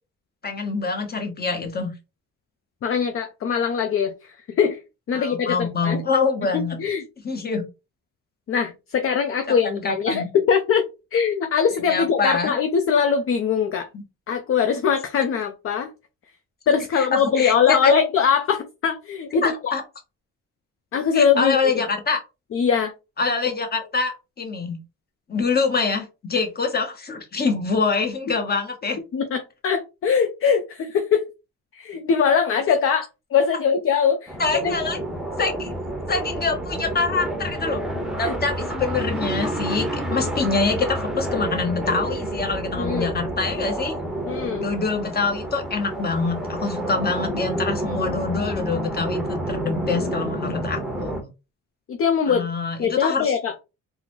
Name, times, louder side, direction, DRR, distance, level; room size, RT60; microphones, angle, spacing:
voice 1, 0.4-1.9 5.1-6.8 7.2-7.6 9.6-10.3 11.9-12.6 17.0-17.1 17.4-17.9 19.4-19.8 21.1-22.2 23.2-24.8 25.3-29.0 34.4-35.0 35.4-35.8 36.1-37.8 38.2-39.9 40.1-43.9 44.6-51.3 52.3-53.3, left 4 dB, 30° left, 1.0 m, -25 dB
voice 2, 2.8-4.8 5.1-6.0 6.5-7.0 8.5-13.9 14.3-15.9 16.7-19.8 20.9-21.6 22.5-22.9 29.1-31.3 31.7-34.4 34.6-34.7 38.2-38.3 40.2-40.5 42.8-43.2 44.3-44.7 51.9-52.5 52.8-53.5, left 6 dB, 45° left, 0.5 m, -22 dB
sound 1, 34.3-51.2, right 1 dB, ahead, 0.8 m, -29 dB
3.7 x 2.0 x 3.0 m
cardioid pair, 90°, 30 cm